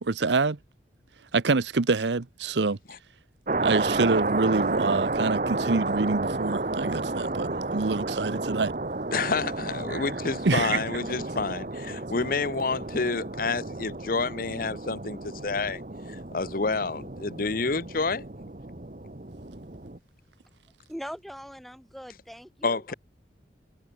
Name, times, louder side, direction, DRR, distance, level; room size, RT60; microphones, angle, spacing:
voice 1, 0.0-0.6 1.3-2.8 3.6-8.7 9.9-10.0 10.4-10.8, right 3 dB, 80° right, 0.8 m, -26 dB
sound 1, 3.5-20.0, right 2 dB, 45° right, 1.4 m, -31 dB
voice 2, 9.1-15.8 16.1-18.2 22.6-22.9, left 4 dB, 55° left, 0.9 m, -29 dB
voice 3, 20.9-22.8, equal, ahead, 1.7 m, -41 dB
head